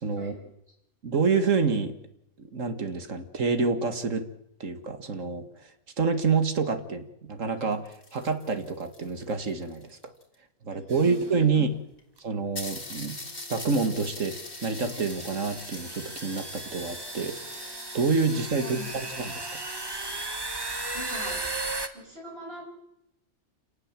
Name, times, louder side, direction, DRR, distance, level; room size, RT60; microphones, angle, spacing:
voice 1, 0.0-0.4 1.0-2.0 2.5-4.3 4.6-5.5 6.0-10.0 10.6-11.7 12.2-13.2 13.5-19.5, right 4 dB, 75° right, 9 dB, 2.2 m, -27 dB
sound 1, 7.6-10.3 11.2-11.3 11.6-11.7 12.0-12.1 12.6-20.7, left 2 dB, 55° left, 3.8 m, -43 dB
sound 2, 10.9-11.3 12.2-12.3 13.4-13.5 14.3-21.9, right 2 dB, 20° right, 1.3 m, -36 dB
voice 2, 20.9-21.4 21.9-22.6, equal, 50° right, 1 dB, 6.6 m, -40 dB
27.5 x 18.5 x 7.5 m, 0.83 s
omnidirectional pair, 1.3 m